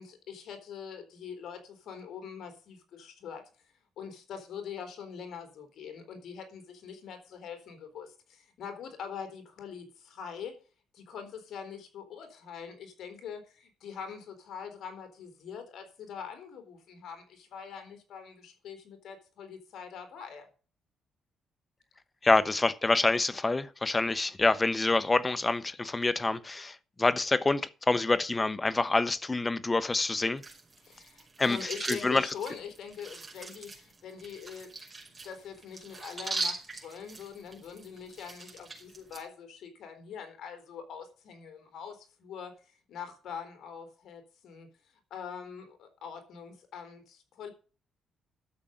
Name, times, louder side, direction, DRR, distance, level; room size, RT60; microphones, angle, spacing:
voice 1, 0.0-3.5 4.0-10.6 10.9-20.5 30.8-34.8 35.1-44.7 45.1-47.5, left 7 dB, 70° left, 4.0 m, -43 dB
voice 2, 22.2-30.4 31.4-32.3, left 3 dB, 20° left, 1.0 m, -27 dB
sound 1, 30.4-39.2, right 3 dB, 20° right, 5.6 m, -41 dB
12.5 x 7.3 x 5.3 m
cardioid pair, 90°, 0 cm